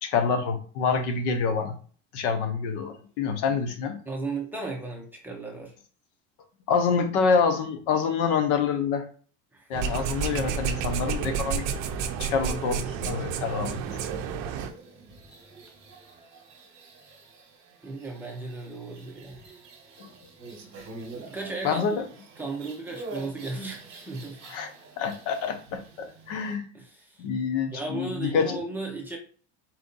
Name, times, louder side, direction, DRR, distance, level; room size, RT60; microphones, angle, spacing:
voice 1, 0.0-1.8 2.1-4.0 6.7-9.0 9.7-11.7 12.2-13.8 20.0-20.1 21.6-22.0 24.4-24.7 25.0-26.7 27.2-28.6, left 5 dB, 80° left, 1.0 m, -27 dB
voice 2, 4.1-5.7 9.5-9.7 17.8-19.4 21.1-21.8 22.4-24.4 26.7-27.2 27.7-29.2, right 3 dB, 5° right, 0.6 m, -35 dB
sound 1, 9.7-14.7, right 6 dB, 50° right, 0.6 m, -30 dB
sound 2, 13.0-26.6, right 3 dB, 30° right, 1.3 m, -46 dB
4.4 x 2.6 x 3.9 m
cardioid pair, 170°, 35 cm